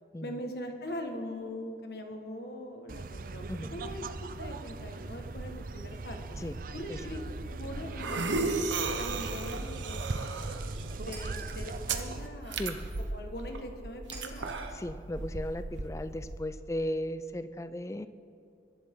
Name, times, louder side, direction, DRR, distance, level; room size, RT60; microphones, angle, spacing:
voice 1, 0.2-6.4 6.7-8.6 9.0-10.5 10.8-12.6 13.1-14.6, left 1 dB, 60° left, 4 dB, 1.6 m, -42 dB
sound 1, 2.9-12.3, right 3 dB, 50° right, 0.5 m, -40 dB
sound 2, 6.9-16.4, right 3 dB, 90° right, 1.0 m, -36 dB
Shatter, 11.1-11.9 14.1-14.8, right 3 dB, 25° right, 2.2 m, -49 dB
voice 2, 14.7-18.1, left 1 dB, 15° left, 12 dB, 0.4 m, -36 dB
23.0 x 11.5 x 3.8 m, 2.6 s
head